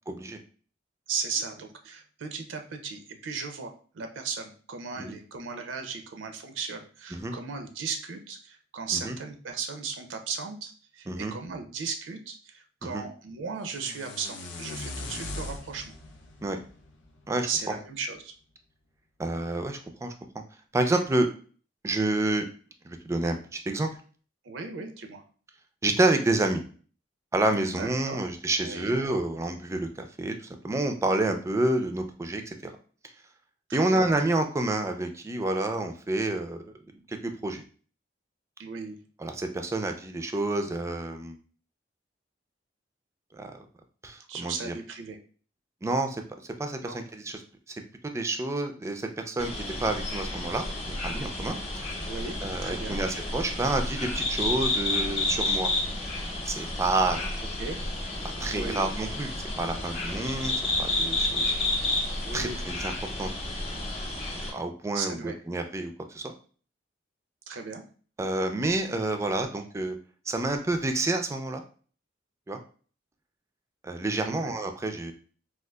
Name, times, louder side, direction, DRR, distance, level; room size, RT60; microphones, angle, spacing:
voice 1, 0.1-0.4 5.0-5.1 7.1-7.3 9.0-9.2 11.1-11.3 12.8-13.0 16.4-16.6 17.3-17.5 19.2-20.1 20.7-21.3 21.8-22.5 22.9-23.9 25.8-26.6 27.3-32.7 33.7-36.6 37.1-37.6 39.2-41.4 43.3-43.5 44.0-44.7 45.8-46.2 46.6-47.4 48.1-51.6 52.4-55.7 56.5-57.2 58.2-60.5 60.8-61.5 62.3-62.9 63.2-63.3 64.5-66.3 68.2-70.0 70.3-71.6 72.5-72.6 73.8-75.1, right 2 dB, 15° right, 5 dB, 0.3 m, -29 dB
voice 2, 1.1-15.9 17.5-18.3 24.4-25.2 27.6-28.2 28.6-29.0 33.7-34.1 38.6-39.0 44.3-45.2 46.8-47.0 52.0-52.4 52.6-53.0 57.6-57.8 58.5-58.8 62.2-62.6 64.9-65.4 67.5-67.8 74.3-74.5, right 5 dB, 80° right, 6 dB, 0.5 m, -36 dB
sound 1, 13.6-17.7, left 2 dB, 65° left, 0.5 m, -40 dB
sound 2, 49.4-64.5, left 2 dB, 30° left, 0.8 m, -31 dB
3.7 x 2.3 x 2.2 m, 0.41 s
head